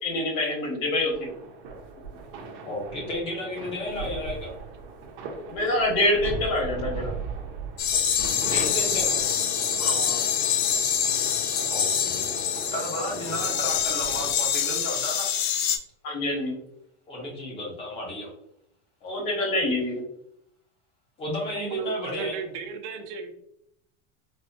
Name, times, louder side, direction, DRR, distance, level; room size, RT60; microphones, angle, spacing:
voice 1, 0.0-1.3 5.5-7.1 9.8-10.2 16.0-16.6 19.0-20.0, left 1 dB, 45° left, 0 dB, 1.0 m, -26 dB
sound 1, 1.1-14.3, right 4 dB, 50° right, 0.7 m, -38 dB
voice 2, 2.6-4.5 8.4-9.1 11.7-12.3 12.7-15.4 17.1-18.3 21.2-22.3, left 1 dB, 15° left, -2 dB, 0.5 m, -33 dB
sound 2, 7.8-15.8, left 8 dB, 60° left, 0.5 m, -25 dB
voice 3, 21.5-23.3, right 6 dB, 85° right, 4 dB, 0.8 m, -34 dB
4.2 x 2.1 x 2.6 m, 0.75 s
supercardioid pair, 175°, 35 cm